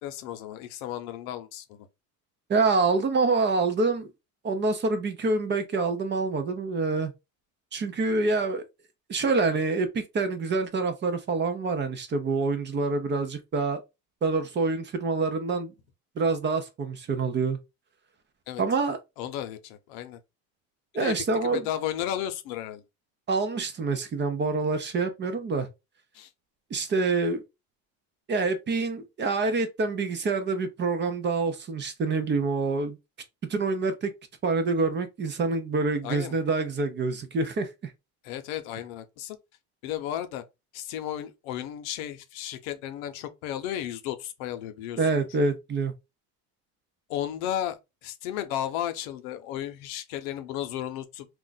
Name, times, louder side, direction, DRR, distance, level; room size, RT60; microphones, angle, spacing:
voice 1, 0.0-1.9 18.5-18.6 19.2-20.2 21.0-21.2 21.4-22.8 26.1-26.3 36.0-36.4 38.2-39.4 39.8-40.4 40.7-45.0 47.1-51.3, left 11 dB, 85° left, 0.7 m, -34 dB
voice 2, 2.5-4.1 4.4-7.1 7.7-8.6 9.1-13.8 14.2-15.7 16.2-17.6 18.6-19.0 20.9-21.6 23.3-25.7 26.7-27.4 28.3-33.0 33.5-34.1 34.4-37.9 45.0-45.9, right 3 dB, 25° right, 0.6 m, -26 dB
2.5 x 2.2 x 3.9 m
supercardioid pair, 115°, 41 cm